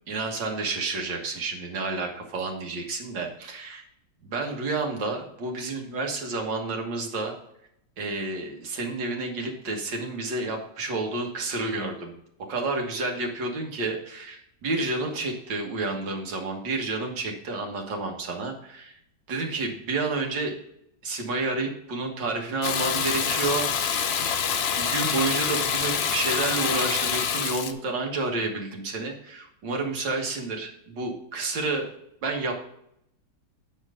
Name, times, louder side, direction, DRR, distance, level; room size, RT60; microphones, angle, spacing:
voice 1, 0.1-3.8 4.2-7.3 8.0-12.1 12.5-18.9 19.3-20.5 21.0-23.9 24.8-31.9 32.2-32.6, right 3 dB, 90° right, 2 dB, 2.2 m, -30 dB
Water tap faucet / Bathtub (filling or washing), 22.6-27.7, left 7 dB, 70° left, 0.5 m, -26 dB
8.8 x 4.6 x 4.9 m, 0.74 s
omnidirectional pair, 1.9 m